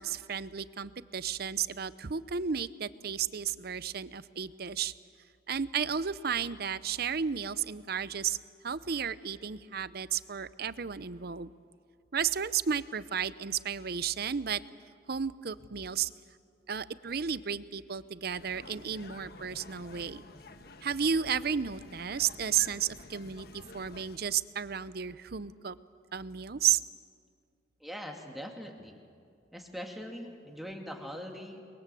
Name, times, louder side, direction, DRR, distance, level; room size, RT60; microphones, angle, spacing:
voice 1, 0.0-4.9 5.5-8.4 8.6-11.5 12.1-14.6 15.1-16.1 16.7-20.2 20.8-25.8 26.1-26.8, right 7 dB, 60° right, 16 dB, 0.7 m, -33 dB
sound 1, 18.4-24.2, left 3 dB, 60° left, 1.3 m, -51 dB
voice 2, 27.8-29.0 29.5-31.6, equal, ahead, 2 dB, 2.5 m, -42 dB
30.0 x 22.0 x 7.7 m, 2.2 s
head